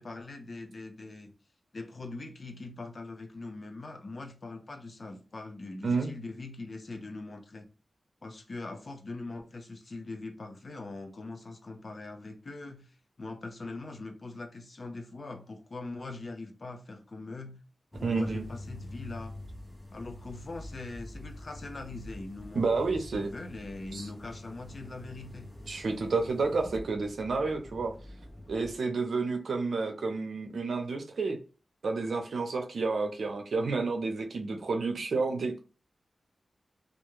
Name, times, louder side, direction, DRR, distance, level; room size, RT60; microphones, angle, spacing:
voice 1, 0.0-1.3 1.7-7.7 8.2-17.6 18.0-19.4 19.9-25.5, left 3 dB, 50° left, 0.6 m, -42 dB
sound 1, 17.9-28.7, left 1 dB, 15° left, 0.7 m, -45 dB
voice 2, 18.0-18.4 22.5-23.3 23.9-24.1 25.6-27.9 28.5-31.4 31.8-35.6, right 4 dB, 80° right, 0.6 m, -30 dB
2.4 x 2.2 x 3.0 m
wide cardioid pair, 75°, 0 cm